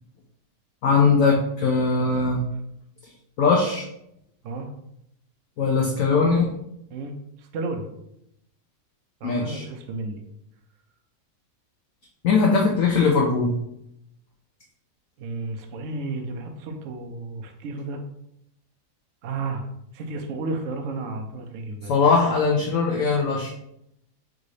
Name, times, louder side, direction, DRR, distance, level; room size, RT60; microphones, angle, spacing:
voice 1, 0.8-2.4 3.4-3.8 5.6-6.5 9.2-9.6 12.2-13.5 21.9-23.5, left 4 dB, 65° left, 0 dB, 0.9 m, -20 dB
voice 2, 6.9-7.9 9.2-10.2 15.2-18.0 19.2-19.7 19.9-21.9, right 3 dB, 65° right, 4 dB, 0.8 m, -32 dB
3.7 x 3.2 x 3.8 m, 0.79 s
omnidirectional pair, 1.8 m